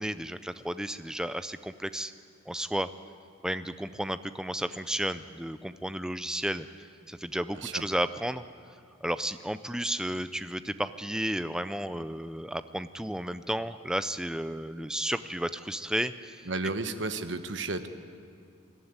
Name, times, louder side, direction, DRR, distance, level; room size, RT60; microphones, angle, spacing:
voice 1, 0.0-2.1 2.5-2.9 3.4-8.4 9.0-16.5, right 1 dB, 5° right, 12 dB, 0.4 m, -33 dB
voice 2, 16.5-17.9, right 3 dB, 65° right, 9 dB, 1.0 m, -33 dB
22.0 x 13.0 x 9.7 m, 2.3 s
head